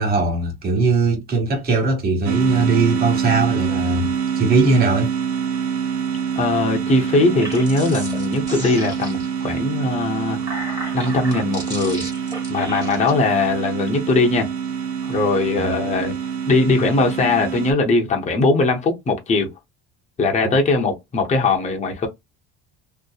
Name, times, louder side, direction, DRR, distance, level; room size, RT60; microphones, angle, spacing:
voice 1, 0.0-5.1 15.6-15.8 20.4-20.6, right 3 dB, 30° right, 1.2 m, -20 dB
sound 1, 2.2-17.7, right 7 dB, 90° right, 0.7 m, -26 dB
voice 2, 6.4-10.4 10.9-12.1 12.5-14.5 15.1-16.2 16.5-19.5 20.2-22.1, left 3 dB, 25° left, 0.7 m, -20 dB
sound 2, 7.2-9.4 10.1-13.1, right 1 dB, 15° right, 1.2 m, -34 dB
2.8 x 2.0 x 2.3 m
cardioid pair, 135°, 30 cm